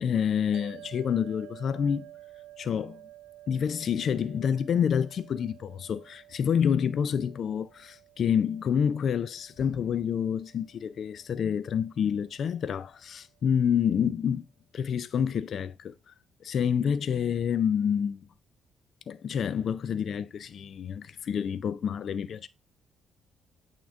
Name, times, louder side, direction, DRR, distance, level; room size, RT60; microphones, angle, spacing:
voice 1, 0.0-2.1 2.6-3.0 3.5-14.5 14.7-16.1 16.4-18.2 19.1-22.5, left 8 dB, 60° left, 0.4 m, -28 dB
sound 1, 0.5-13.0, right 14 dB, 80° right, 0.6 m, -52 dB
8.5 x 3.7 x 3.4 m
cardioid pair, 90°, 0 cm